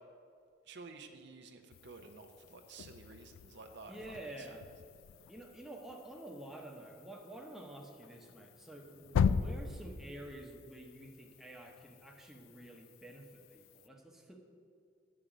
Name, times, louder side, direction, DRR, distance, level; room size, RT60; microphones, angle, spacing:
voice 1, 0.7-4.6, right 3 dB, 60° right, 6 dB, 0.7 m, -52 dB
sound 1, 1.7-13.9, left 6 dB, 85° left, 0.3 m, -40 dB
voice 2, 3.9-4.7 5.3-14.4, right 1 dB, ahead, 0 dB, 0.8 m, -49 dB
8.9 x 6.6 x 5.0 m, 2.4 s
head